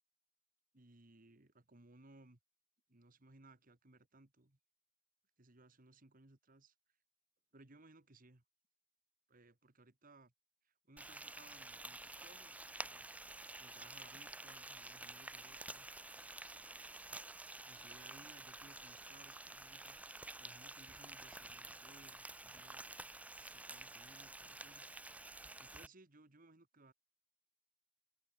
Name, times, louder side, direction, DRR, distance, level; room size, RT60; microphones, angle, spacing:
voice 1, 0.7-2.4 2.9-4.6 5.4-6.8 7.5-8.4 9.3-10.3 10.6-13.0 13.6-15.9 16.5-16.8 17.7-22.9 23.4-24.9 25.6-26.9, right 2 dB, 45° right, 1.8 m, -63 dB
Frying (food), 11.0-25.9, right 2 dB, 5° right, 0.6 m, -50 dB
open air
head